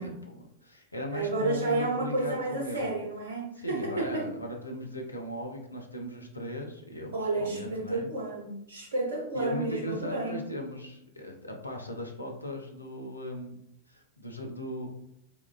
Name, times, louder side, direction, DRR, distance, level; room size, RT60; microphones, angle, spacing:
voice 1, 0.0-3.0 3.6-8.1 9.3-13.6 13.9-14.9, left 1 dB, 85° left, 2 dB, 0.5 m, -38 dB
voice 2, 1.1-4.3 7.1-10.4, right 2 dB, 65° right, 1 dB, 0.8 m, -31 dB
3.5 x 2.3 x 2.4 m, 0.75 s
figure-of-eight pair, 90°, 0 cm